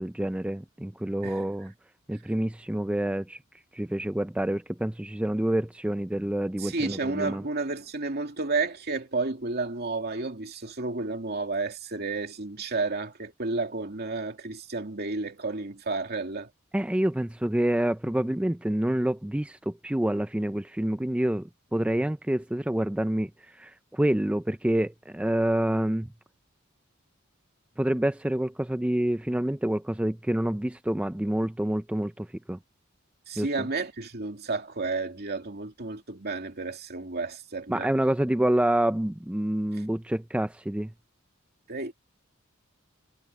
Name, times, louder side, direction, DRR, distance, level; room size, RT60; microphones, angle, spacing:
voice 1, 0.0-1.7 2.1-3.4 3.7-7.4 16.7-23.3 23.6-26.1 27.8-32.6 33.4-33.5 37.7-40.9, right 1 dB, 5° right, 0.4 m, -27 dB
voice 2, 6.6-16.5 33.3-37.9 39.7-39.8 41.7-41.9, right 3 dB, 50° right, 2.6 m, -31 dB
head